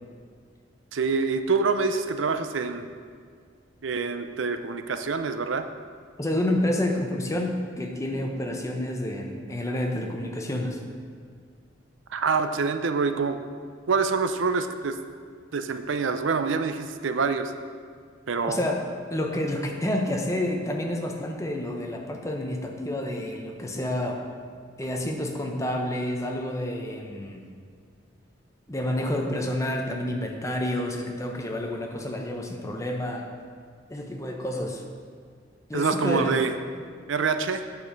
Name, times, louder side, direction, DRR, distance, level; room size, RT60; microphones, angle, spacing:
voice 1, 0.9-2.9 3.8-5.7 12.1-13.4 13.9-15.0 15.5-17.5 18.3-18.6 35.7-36.5 37.1-37.6, right 4 dB, 90° right, 9 dB, 0.6 m, -26 dB
voice 2, 6.2-10.8 18.4-24.2 24.8-27.4 28.7-33.3 33.9-34.8 35.7-36.4, left 1 dB, 15° left, 1 dB, 0.9 m, -29 dB
8.6 x 6.5 x 5.2 m, 2.1 s
head